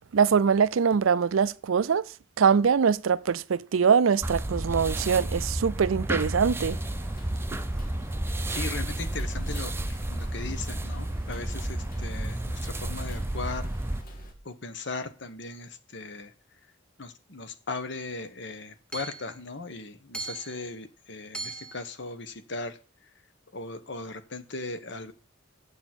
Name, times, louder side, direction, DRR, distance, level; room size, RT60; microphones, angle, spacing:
voice 1, 0.1-2.0 2.4-6.8, right 6 dB, 85° right, 0.5 m, -23 dB
sound 1, 4.2-14.0, right 1 dB, 10° right, 0.6 m, -31 dB
sound 2, 6.6-14.3, right 1 dB, 45° left, 2.8 m, -46 dB
voice 2, 8.5-13.7 14.4-16.3 17.0-22.8 23.5-25.1, left 3 dB, 60° left, 1.2 m, -38 dB
Hammer / Chink clink, 18.0-18.1 18.9-19.3 20.1-20.6 21.3-21.8, right 3 dB, 5° left, 1.0 m, -38 dB
8.2 x 7.0 x 6.0 m
head